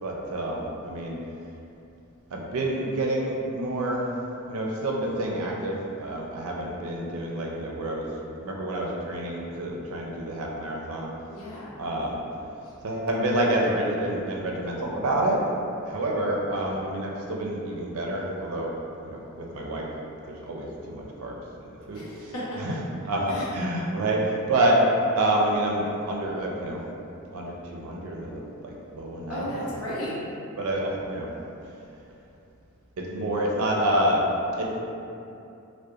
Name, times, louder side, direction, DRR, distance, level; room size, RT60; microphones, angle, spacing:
voice 1, 0.0-1.2 2.3-4.0 4.5-8.1 8.4-11.1 11.8-12.2 12.8-15.4 15.9-18.7 19.0-19.9 20.3-21.4 21.6-22.3 22.6-22.7 23.0-24.8 25.2-26.8 27.3-29.6 30.6-31.3 33.0-34.2 34.6-34.8, right 1 dB, 75° right, -2 dB, 0.4 m, -28 dB
voice 2, 11.3-11.7 21.9-22.6 23.3-23.5 29.3-30.2, equal, 85° left, -8 dB, 0.8 m, -34 dB
2.7 x 2.1 x 2.3 m, 2.8 s
head